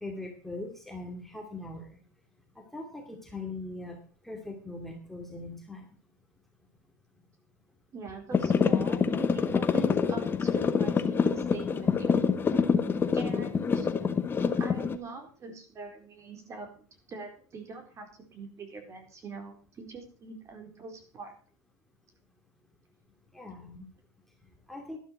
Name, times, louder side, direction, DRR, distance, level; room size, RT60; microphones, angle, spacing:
voice 1, 0.0-1.9 2.7-4.0 4.2-5.9 23.3-23.9 24.7-25.0, left 2 dB, ahead, 1 dB, 2.4 m, -40 dB
voice 2, 7.9-12.2 13.1-13.9 14.6-21.3, right 4 dB, 30° right, 4 dB, 4.3 m, -43 dB
sound 1, 8.3-15.0, left 5 dB, 20° left, 1.2 m, -26 dB
12.0 x 12.0 x 4.7 m, 0.42 s
hypercardioid pair, 110°, 10 cm